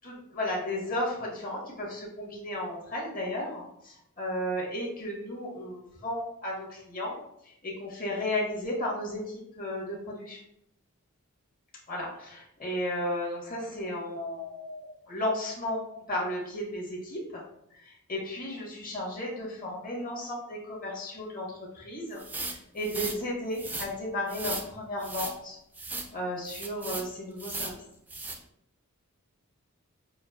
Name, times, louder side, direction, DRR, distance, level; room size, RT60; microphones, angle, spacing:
voice 1, 0.0-7.1 7.4-10.4 11.9-17.4 17.7-22.2 22.7-25.6 26.1-27.8, left 1 dB, 40° left, -4 dB, 1.3 m, -34 dB
sound 1, 22.2-23.2 23.5-23.9 24.3-24.7 25.0-25.4 25.7-26.1 26.5-27.1 27.4-27.8 28.1-28.4, right 3 dB, 10° right, 0.4 m, -36 dB
6.3 x 2.5 x 2.4 m, 0.79 s
head